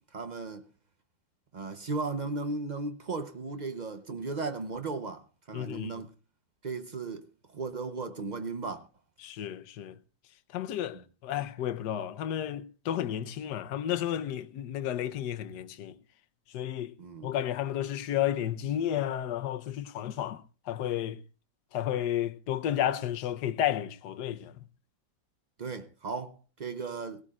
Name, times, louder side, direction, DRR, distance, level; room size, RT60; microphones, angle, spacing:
voice 1, 0.1-0.6 1.5-6.1 6.6-7.2 7.5-8.9 10.9-11.0 17.0-17.3 25.6-27.2, right 3 dB, 50° right, 0.5 m, -36 dB
voice 2, 5.5-5.9 9.2-10.0 10.5-16.0 16.5-16.9 17.2-21.2 21.7-24.5, left 11 dB, 70° left, 1.3 m, -32 dB
17.5 x 17.5 x 2.4 m
omnidirectional pair, 2.0 m